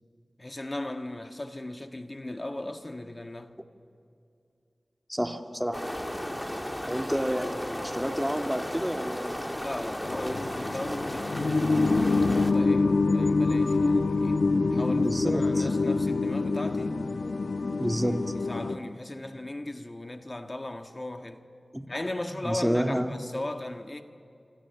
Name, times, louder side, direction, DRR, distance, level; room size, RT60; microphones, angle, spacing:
voice 1, 0.4-3.6 9.6-17.0 17.8-18.0 18.5-21.5 21.9-24.0, left 1 dB, 35° left, 1.6 m, -37 dB
voice 2, 5.1-5.9 6.8-9.6 10.2-10.4 14.7-15.7 17.8-18.1 21.7-21.9 22.4-23.2, equal, 5° right, 2.0 m, -30 dB
sound 1, 5.7-12.5, equal, 15° left, 2.3 m, -35 dB
sound 2, 10.0-18.7, left 3 dB, 80° left, 1.2 m, -25 dB
26.5 x 26.0 x 7.0 m
cardioid pair, 40°, 0 cm